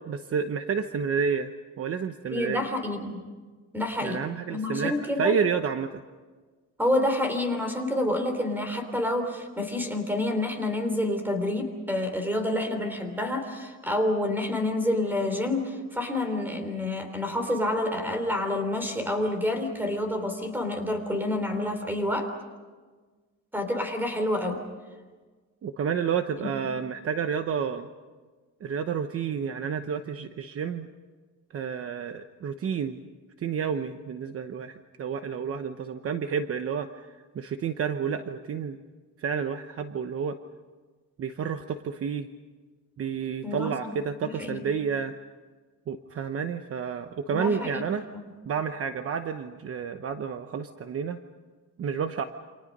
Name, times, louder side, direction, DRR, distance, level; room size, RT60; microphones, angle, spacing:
voice 1, 0.0-2.6 4.0-5.9 25.6-27.9 28.6-30.9 31.5-33.0 33.4-36.9 37.3-38.8 39.2-40.4 41.2-42.3 43.0-45.1 45.9-48.1 48.4-51.2 51.8-52.2, right 6 dB, 45° right, 8 dB, 1.0 m, -30 dB
voice 2, 2.3-3.2 3.7-4.2 4.5-5.3 6.8-22.3 23.5-24.6 26.4-26.5 43.4-43.9 44.2-44.6 47.3-47.8 48.1-48.2, left 1 dB, 5° right, 6 dB, 3.5 m, -28 dB
29.0 x 26.5 x 5.4 m, 1.4 s
cardioid pair, 175°, 31 cm